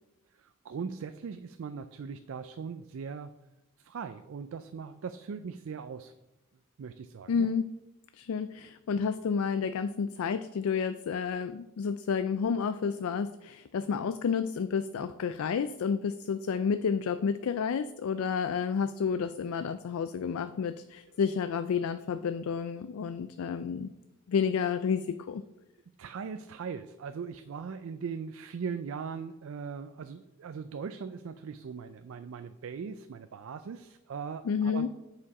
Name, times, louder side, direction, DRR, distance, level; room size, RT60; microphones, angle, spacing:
voice 1, 0.3-3.3 3.8-6.1 6.8-7.5 26.0-34.9, right 6 dB, 70° right, 10 dB, 0.4 m, -40 dB
voice 2, 7.3-7.6 8.1-23.9 24.3-25.4 34.5-34.9, left 6 dB, 80° left, 11 dB, 0.3 m, -30 dB
8.4 x 5.0 x 4.7 m, 0.95 s
head